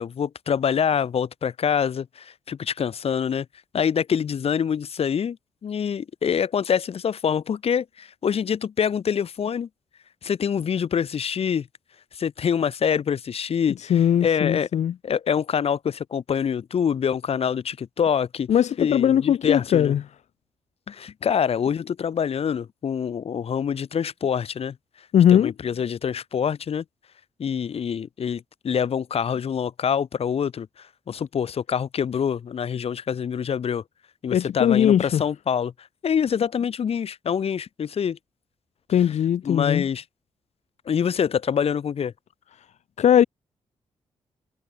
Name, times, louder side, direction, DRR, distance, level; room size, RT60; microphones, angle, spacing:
voice 1, 0.0-3.5 3.7-5.4 5.6-9.7 10.2-11.7 12.1-13.9 14.2-14.7 15.0-18.5 18.8-19.9 20.9-24.8 25.3-26.8 27.4-30.7 31.1-33.8 34.2-35.7 36.0-38.2 39.4-40.0 40.9-42.1, left 7 dB, 55° left, 2.7 m, -25 dB
voice 2, 13.8-14.9 18.5-20.0 25.1-25.5 34.3-35.2 38.9-39.9 43.0-43.2, left 9 dB, 75° left, 1.7 m, -19 dB
cardioid pair, 115°, 12 cm